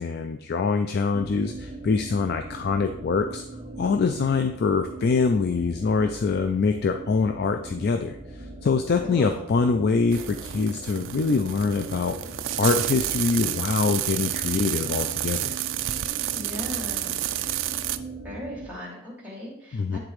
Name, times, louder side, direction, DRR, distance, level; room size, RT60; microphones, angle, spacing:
voice 1, 0.0-3.4 3.8-8.2 8.6-12.2 12.6-15.5 19.7-20.0, left 4 dB, 45° left, 7 dB, 0.3 m, -24 dB
sound 1, 1.1-18.7, right 2 dB, 25° right, 0.9 m, -40 dB
voice 2, 9.0-9.5 16.3-17.2 18.2-20.0, left 1 dB, 5° right, -5 dB, 2.0 m, -37 dB
sound 2, 10.1-18.0, right 13 dB, 60° right, 0.3 m, -30 dB
9.6 x 3.8 x 3.1 m, 0.73 s
head